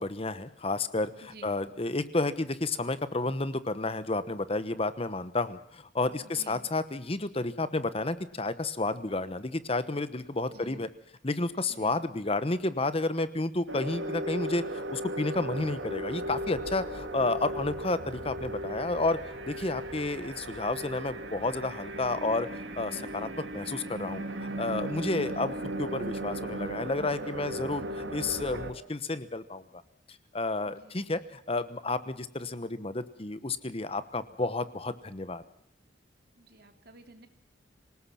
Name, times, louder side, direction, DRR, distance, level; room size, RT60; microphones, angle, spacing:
voice 1, 0.0-10.9 11.2-19.2 19.5-22.5 22.8-24.2 24.6-29.6 30.3-35.4, left 2 dB, 30° left, 13 dB, 1.0 m, -31 dB
voice 2, 6.2-6.6 10.5-10.8 11.7-12.0 19.7-19.9 30.7-31.0 36.4-37.3, right 2 dB, 55° right, 6 dB, 3.1 m, -51 dB
sound 1, 13.7-28.7, right 1 dB, 80° right, 2.7 m, -37 dB
26.5 x 18.5 x 5.8 m, 0.70 s
head